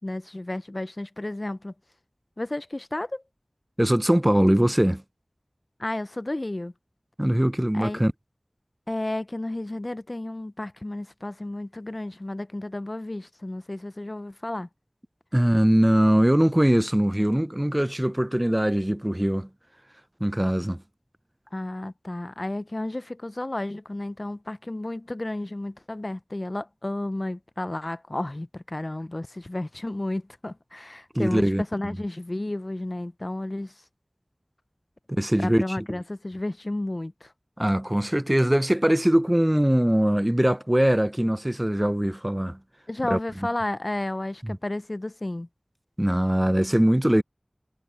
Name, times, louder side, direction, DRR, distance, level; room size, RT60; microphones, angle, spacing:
voice 1, 0.0-1.7 2.4-3.2 5.8-6.7 7.7-8.0 8.9-14.7 21.5-33.7 35.4-37.3 42.9-45.5, left 1 dB, 45° left, 0.5 m, -32 dB
voice 2, 3.8-5.0 7.2-8.1 15.3-19.5 20.2-20.8 31.1-31.6 35.1-35.8 37.6-42.6 43.1-43.2 44.4-44.6 46.0-47.2, right 1 dB, 20° right, 0.5 m, -22 dB
wide cardioid pair, 45°, 0 cm